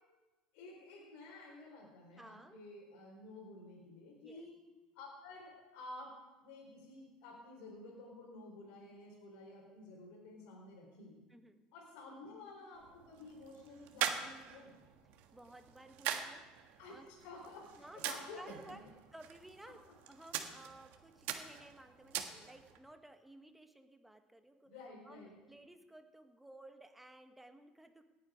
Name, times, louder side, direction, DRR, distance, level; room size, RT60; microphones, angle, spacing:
voice 1, 0.5-4.5 4.9-6.1 6.4-11.2 11.7-14.8 16.8-18.9 19.8-19.9 24.6-25.3, left 2 dB, 75° left, -2 dB, 4.1 m, -52 dB
voice 2, 2.1-2.6 4.2-4.5 11.3-11.6 15.3-17.1 17.8-18.8 19.1-19.8 20.1-24.7 25.1-28.0, right 1 dB, 5° right, 7 dB, 1.2 m, -56 dB
sound 1, 12.7-22.8, right 10 dB, 65° right, 1.5 m, -44 dB
18.0 x 8.6 x 5.0 m, 1.2 s
supercardioid pair, 115°, 3 cm